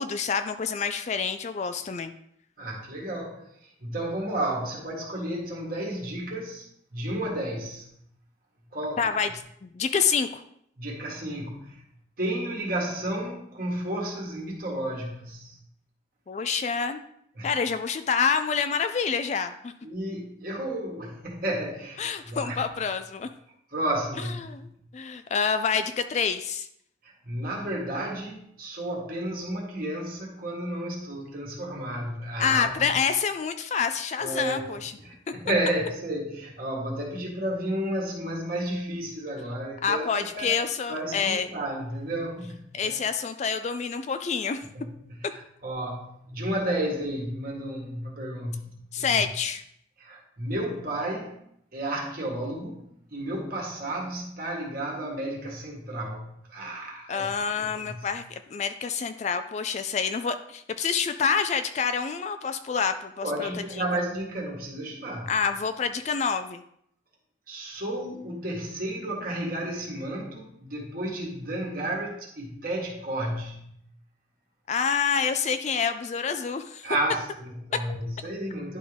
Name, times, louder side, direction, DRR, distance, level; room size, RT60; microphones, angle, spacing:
voice 1, 0.0-2.1 9.0-9.3 9.6-10.4 16.3-17.0 17.4-19.7 22.0-23.3 24.4-24.7 24.9-26.7 32.4-34.9 39.8-41.5 42.7-44.6 48.9-49.6 57.1-63.5 63.8-63.9 65.3-66.6 74.7-76.9, left 6 dB, 35° left, 9 dB, 0.3 m, -27 dB
voice 2, 2.6-6.7 6.9-8.0 8.7-9.0 10.8-11.8 12.2-15.6 17.4-17.5 19.8-22.7 23.7-24.8 27.0-32.9 34.2-34.6 35.0-40.5 40.9-43.0 44.7-44.9 45.2-49.2 50.0-51.4 51.7-57.3 57.6-58.1 63.2-65.3 67.5-73.9 76.8-78.8, right 1 dB, 50° right, -2 dB, 1.8 m, -32 dB
10.5 x 3.8 x 3.4 m, 0.71 s
head